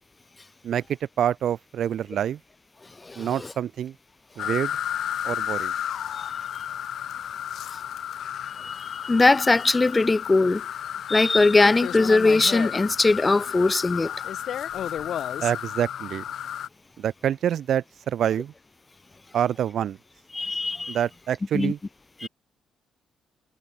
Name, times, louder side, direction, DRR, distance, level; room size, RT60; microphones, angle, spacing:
voice 1, 1.2-2.4 3.2-3.9 4.4-4.8 5.2-5.7 15.4-16.2 17.0-18.5 19.3-20.0 20.9-21.8 22.2-22.3, right 10 dB, 65° right, 1.0 m, -26 dB
sound 1, 4.4-16.7, left 10 dB, 65° left, 4.7 m, -32 dB
voice 2, 8.6-10.6 11.1-14.1 20.3-21.0 21.5-21.7 22.2-22.3, left 3 dB, 20° left, 1.9 m, -20 dB
cardioid pair, 90°, 0 cm